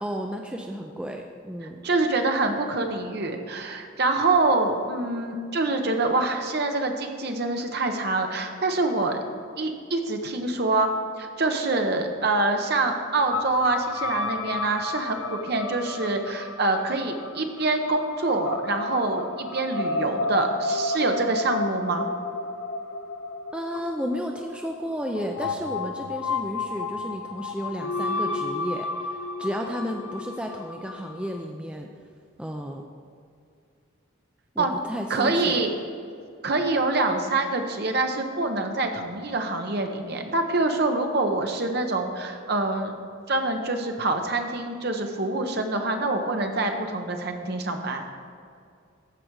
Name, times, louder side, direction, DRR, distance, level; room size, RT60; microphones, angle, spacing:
voice 1, 0.0-1.8 23.5-31.9 32.4-32.8 34.6-35.6, equal, 5° right, 2 dB, 0.3 m, -33 dB
voice 2, 1.8-9.2 9.6-10.9 11.2-22.0 34.6-34.7 35.1-35.7 36.4-43.0 43.3-48.0, right 2 dB, 50° right, 4 dB, 0.9 m, -25 dB
sound 1, 13.3-31.4, left 3 dB, 85° left, 0.7 m, -32 dB
14.0 x 4.9 x 4.7 m, 2.4 s
head